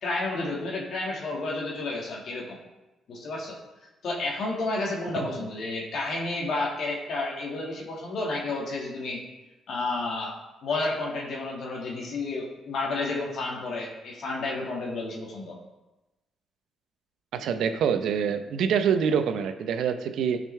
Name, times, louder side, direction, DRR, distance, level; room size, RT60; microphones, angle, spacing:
voice 1, 0.0-2.6 3.1-3.6 4.0-9.2 9.7-10.4 10.6-15.6, left 2 dB, 65° left, -2 dB, 1.7 m, -31 dB
voice 2, 17.3-20.4, right 7 dB, 80° right, 8 dB, 0.7 m, -25 dB
12.0 x 5.2 x 3.2 m, 1.0 s
cardioid pair, 90°, 0 cm